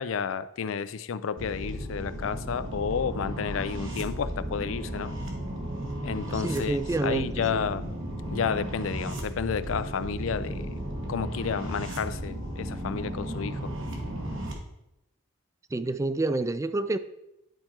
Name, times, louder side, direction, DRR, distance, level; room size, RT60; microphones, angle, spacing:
voice 1, 0.0-5.2 6.0-7.9 8.3-10.8 11.1-13.6, left 6 dB, 85° left, 14 dB, 0.4 m, -31 dB
sound 1, 1.4-14.5, right 1 dB, 75° right, 1.6 m, -35 dB
voice 2, 6.3-7.6 15.7-17.0, right 2 dB, 15° right, 12 dB, 0.3 m, -28 dB
10.5 x 4.4 x 4.4 m, 0.88 s
head